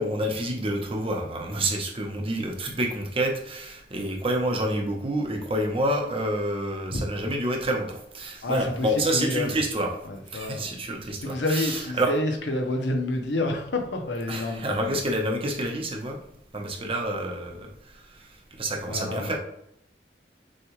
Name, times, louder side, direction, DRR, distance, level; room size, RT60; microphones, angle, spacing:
voice 1, 0.0-10.0 10.3-12.2 14.3-16.2 16.5-18.3 18.6-19.4, right 1 dB, 30° right, 2 dB, 0.8 m, -28 dB
voice 2, 8.4-9.5 10.1-10.7 11.2-15.0 18.9-19.3, left 2 dB, 80° left, 4 dB, 0.8 m, -28 dB
6.3 x 2.3 x 3.1 m, 0.76 s
head